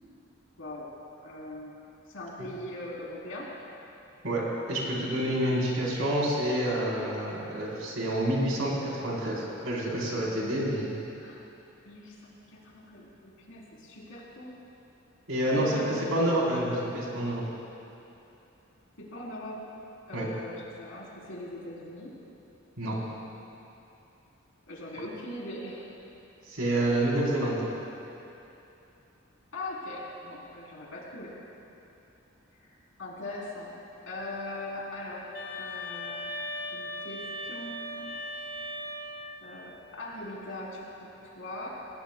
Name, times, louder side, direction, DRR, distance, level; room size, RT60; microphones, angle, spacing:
voice 1, 1.2-1.8 2.1-3.5 11.2-11.4 11.8-14.6 15.4-16.1 19.0-19.6 20.1-22.2 24.7-25.9 29.5-31.4 32.6-32.7 33.0-33.8 34.1-35.2 35.6-36.4 36.7-38.2 39.4-41.7, left 1 dB, 75° left, -4 dB, 3.4 m, -40 dB
voice 2, 4.7-10.9 15.3-17.4 20.1-20.3 22.8-23.0 26.5-27.6, right 1 dB, 85° right, -4 dB, 3.6 m, -28 dB
sound 1, 35.3-39.5, left 1 dB, 45° left, 1.2 m, -38 dB
20.0 x 18.5 x 2.2 m, 2.9 s
head